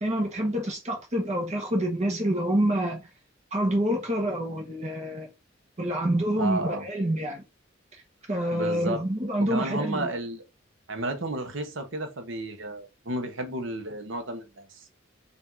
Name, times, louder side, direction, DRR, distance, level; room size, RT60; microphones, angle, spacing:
voice 1, 0.0-3.1 3.5-5.3 5.8-7.4 8.3-10.1, right 1 dB, 35° right, 1.2 m, -27 dB
voice 2, 6.4-6.9 8.5-9.0 9.5-10.4 10.9-14.6, right 2 dB, 70° right, 1.0 m, -32 dB
4.7 x 2.7 x 3.8 m
head